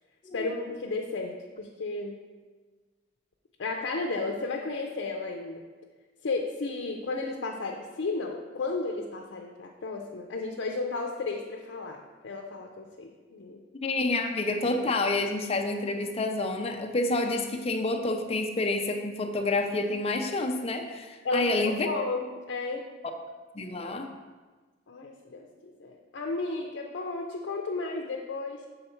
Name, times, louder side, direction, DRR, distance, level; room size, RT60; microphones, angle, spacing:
voice 1, 0.3-2.2 3.6-5.6 6.2-13.6 21.2-22.9 24.9-28.6, left 3 dB, 80° left, 1 dB, 0.5 m, -33 dB
voice 2, 13.8-21.9 23.5-24.1, left 2 dB, 35° left, 5 dB, 0.5 m, -28 dB
6.6 x 3.9 x 4.4 m, 1.3 s
head